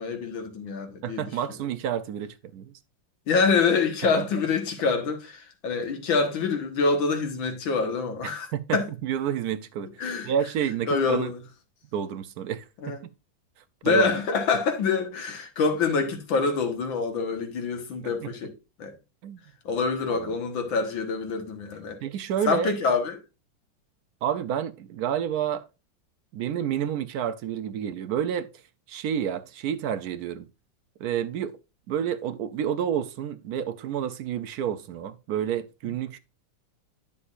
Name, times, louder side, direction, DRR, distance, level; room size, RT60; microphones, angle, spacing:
voice 1, 0.0-1.6 3.3-8.9 10.0-10.3 10.9-11.4 12.8-13.0 13.8-18.5 18.8-19.0 19.7-22.0 22.4-23.2, left 4 dB, 90° left, 2.1 m, -26 dB
voice 2, 1.0-2.7 4.2-4.3 8.2-8.8 9.0-10.0 10.2-11.3 11.9-13.0 13.8-14.0 18.2-18.3 19.2-19.4 20.1-20.3 22.0-22.7 24.2-25.7 26.3-28.5 28.9-30.5 31.0-31.6 31.9-36.2, right 9 dB, 70° right, 0.9 m, -29 dB
9.8 x 6.9 x 2.5 m
omnidirectional pair, 2.1 m